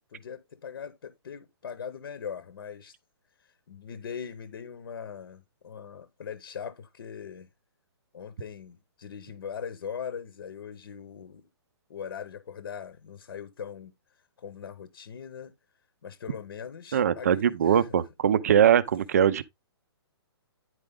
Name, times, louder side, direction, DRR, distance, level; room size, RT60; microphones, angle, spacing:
voice 1, 0.1-3.0 3.4-7.5 8.1-11.4 11.9-13.9 14.4-15.5 16.0-17.9, left 7 dB, 60° left, 0.9 m, -40 dB
voice 2, 16.9-19.4, right 9 dB, 35° right, 0.5 m, -22 dB
9.8 x 4.8 x 3.6 m
hypercardioid pair, 175°, 14 cm